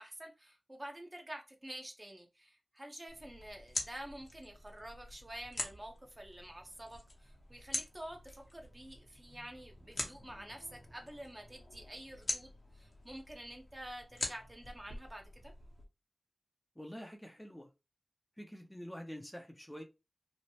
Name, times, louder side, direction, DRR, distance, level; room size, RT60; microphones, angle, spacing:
voice 1, 0.0-12.5 12.7-15.5, right 1 dB, 30° right, 0.8 m, -49 dB
sound 1, 3.1-15.8, left 2 dB, 75° left, 0.9 m, -45 dB
voice 2, 16.8-17.7 18.4-19.8, equal, 10° left, 0.6 m, -47 dB
3.1 x 2.1 x 2.8 m
cardioid pair, 45°, 0 cm